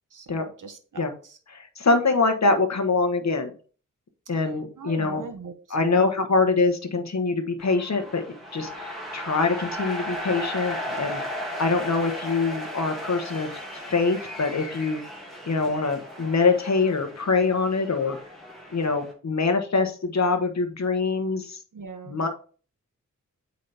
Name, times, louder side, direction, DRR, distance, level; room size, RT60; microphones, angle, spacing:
voice 1, 0.1-1.0 4.8-6.1 21.7-22.2, right 4 dB, 70° right, 7 dB, 1.2 m, -40 dB
voice 2, 1.5-3.5 4.3-5.2 5.7-8.2 8.5-15.0 15.5-18.2 18.7-21.6 22.1-22.3, left 4 dB, 55° left, 6 dB, 1.3 m, -24 dB
sound 1, 7.6-19.1, equal, ahead, 2.4 m, -36 dB
8.4 x 4.2 x 3.5 m, 0.40 s
wide cardioid pair, 95°, 32 cm